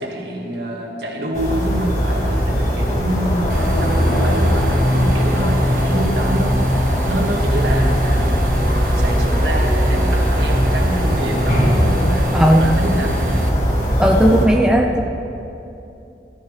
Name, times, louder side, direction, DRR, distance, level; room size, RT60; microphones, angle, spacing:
voice 1, 0.0-8.3 8.9-13.2, right 1 dB, 75° right, 0 dB, 1.8 m, -26 dB
sound 1, 1.3-14.5, equal, 45° left, 2.0 m, -18 dB
sound 2, 3.5-13.5, right 2 dB, 50° right, 0.7 m, -31 dB
voice 2, 12.3-12.8 14.0-15.0, equal, 5° right, 1 dB, 0.6 m, -15 dB
14.5 x 13.0 x 3.3 m, 2.8 s
head